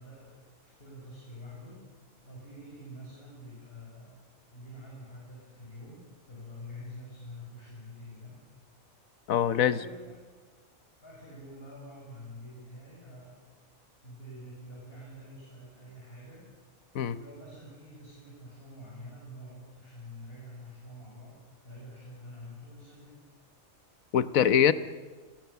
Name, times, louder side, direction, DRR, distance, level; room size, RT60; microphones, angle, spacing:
voice 1, 0.0-1.8 2.2-4.2 4.5-8.4 9.6-10.3 11.0-13.4 14.0-16.5 17.0-23.3, left 1 dB, 40° left, -4 dB, 7.1 m, -47 dB
voice 2, 9.3-9.8 16.9-17.2 24.1-24.7, left 9 dB, 75° left, 14 dB, 1.3 m, -23 dB
30.0 x 22.5 x 7.0 m, 1.3 s
omnidirectional pair, 1.5 m